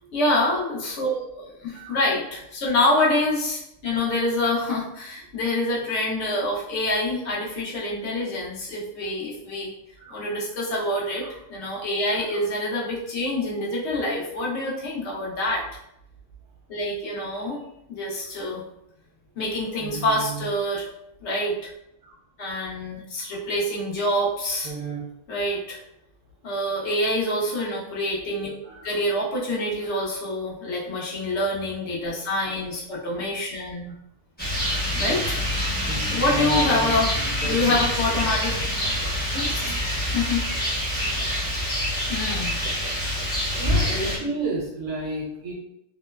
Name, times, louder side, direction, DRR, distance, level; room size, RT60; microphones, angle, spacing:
voice 1, 0.1-9.7 10.1-11.2 11.5-15.6 16.7-17.6 17.9-18.6 19.4-20.9 21.2-21.6 22.4-24.7 25.3-25.8 26.4-28.5 28.8-33.9 34.9-35.4 36.1-37.1 37.4-38.6 39.3-39.7 40.1-40.5 40.8-41.1 42.1-42.5, left 1 dB, 60° left, -5 dB, 1.0 m, -26 dB
voice 2, 1.7-2.0 6.3-6.4 10.0-10.1 11.2-11.3 12.1-12.4 19.8-20.5 22.0-22.1 23.3-23.4 24.6-25.0 28.2-28.4 28.6-29.0 29.8-30.1 35.3-35.5 35.9-37.0 37.4-37.6 43.0-43.2 43.6-45.5, right 3 dB, 70° right, -4 dB, 1.2 m, -33 dB
Rain, 34.4-44.2, equal, 10° left, 0.6 m, -26 dB
3.0 x 2.0 x 2.2 m, 0.81 s
omnidirectional pair, 1.4 m